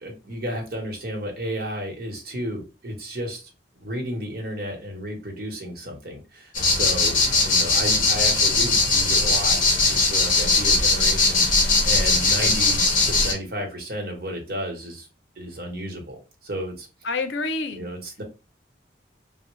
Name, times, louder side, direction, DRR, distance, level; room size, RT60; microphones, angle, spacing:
voice 1, 0.0-15.1 15.4-16.9 17.7-18.2, equal, 55° right, 0.9 m, -33 dB
sound 1, 6.5-13.3, left 3 dB, 45° left, 0.7 m, -20 dB
voice 2, 17.0-17.9, left 3 dB, 80° left, 0.5 m, -28 dB
3.4 x 2.0 x 3.0 m
head